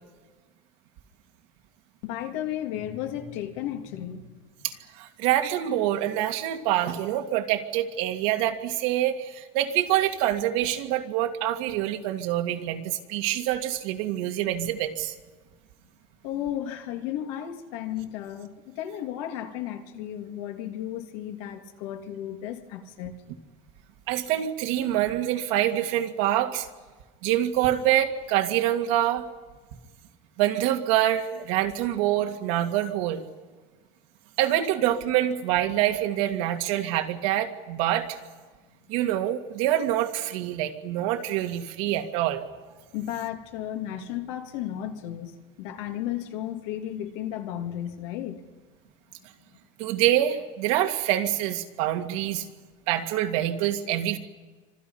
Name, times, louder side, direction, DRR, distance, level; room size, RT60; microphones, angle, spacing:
voice 1, 2.0-4.4 16.2-23.2 42.9-48.4, left 11 dB, 80° left, 5 dB, 2.6 m, -34 dB
voice 2, 4.6-15.1 24.1-26.7 27.2-29.2 30.4-33.2 34.4-38.2 38.9-42.4 49.8-52.5 52.9-54.2, right 12 dB, 80° right, 5 dB, 2.0 m, -26 dB
29.5 x 25.5 x 5.6 m, 1.3 s
cardioid pair, 175°, 16 cm